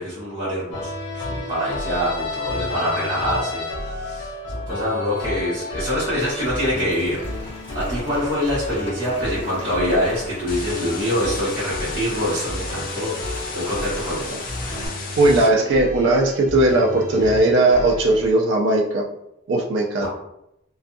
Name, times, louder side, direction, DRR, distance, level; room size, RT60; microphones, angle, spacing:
voice 1, 0.0-7.2 7.7-13.1 13.5-14.4 20.0-20.1, equal, 30° right, -13 dB, 1.0 m, -25 dB
sound 1, 0.7-18.3, left 2 dB, 65° left, 0.8 m, -32 dB
Rain, 6.2-14.9, left 1 dB, 30° left, 0.9 m, -40 dB
sound 2, 10.5-15.5, left 4 dB, 45° left, 0.5 m, -34 dB
voice 2, 15.2-19.0 19.5-20.1, right 2 dB, 65° right, -1 dB, 0.4 m, -18 dB
2.5 x 2.3 x 2.6 m, 0.82 s
head